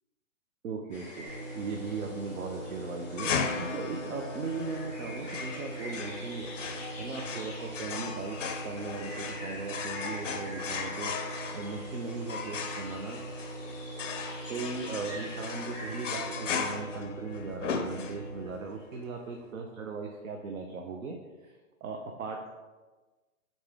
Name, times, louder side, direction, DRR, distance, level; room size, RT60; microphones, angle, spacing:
voice 1, 0.6-1.3 1.5-6.5 7.0-8.4 8.6-11.1 11.4-13.2 14.5-21.6 21.8-22.5, right 4 dB, 70° right, 2 dB, 0.6 m, -38 dB
sound 1, 0.9-16.6, left 1 dB, 25° left, 1.3 m, -46 dB
sound 2, 1.2-18.5, right 2 dB, 40° right, 1.1 m, -42 dB
sound 3, 3.2-18.5, left 6 dB, 60° left, 0.5 m, -37 dB
3.8 x 3.5 x 3.5 m, 1.2 s
hypercardioid pair, 175°, 42 cm